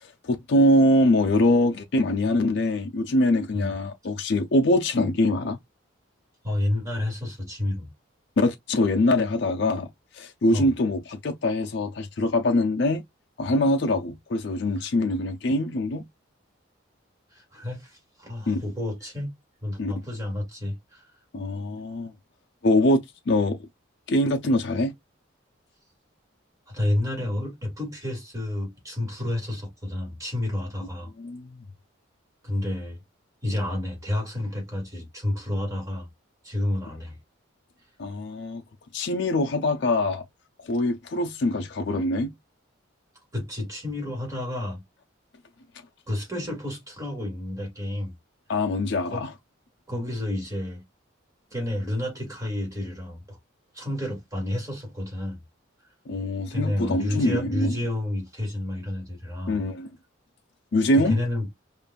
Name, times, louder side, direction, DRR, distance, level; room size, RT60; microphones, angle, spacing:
voice 1, 0.0-5.6 8.4-9.9 10.1-13.0 13.4-16.0 18.5-18.6 19.8-19.9 21.3-22.1 22.6-23.6 24.1-24.9 31.2-31.5 38.0-38.6 38.9-40.2 40.6-42.3 48.5-49.3 56.1-57.8 59.5-59.9 60.7-61.2, left 1 dB, 55° left, 0.5 m, -23 dB
voice 2, 6.4-7.9 10.5-10.7 14.8-14.9 17.3-19.3 19.6-21.0 26.7-31.1 32.4-33.0 33.4-36.1 36.4-37.2 43.3-44.8 46.1-48.1 49.1-49.2 49.9-50.8 51.5-53.4 53.7-55.4 56.5-59.6 60.9-61.5, left 1 dB, 15° right, 2.0 m, -30 dB
5.0 x 2.5 x 2.3 m
head